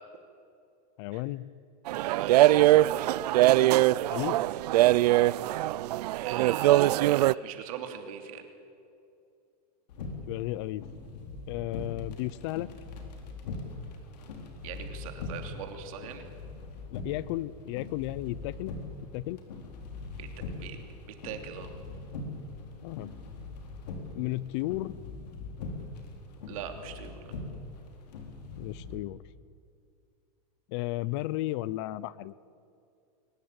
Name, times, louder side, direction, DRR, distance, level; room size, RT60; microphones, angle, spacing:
voice 1, 1.0-1.5 4.1-4.4 10.2-10.9 11.5-12.7 16.9-18.7 19.1-19.4 22.8-23.1 24.1-25.0 28.6-29.2 30.7-32.3, left 17 dB, 40° left, 20 dB, 0.6 m, -34 dB
voice 2, 1.9-2.4 6.2-8.4 14.6-16.3 20.2-20.3 20.6-20.8 21.1-21.7 26.5-27.3, right 9 dB, 60° right, 5 dB, 3.0 m, -40 dB
sound 1, 1.9-7.3, right 16 dB, 75° right, 0.5 m, -22 dB
sound 2, 9.9-28.9, left 3 dB, 85° left, 4.4 m, -42 dB
23.0 x 19.5 x 8.9 m, 2.5 s
supercardioid pair, 175°, 21 cm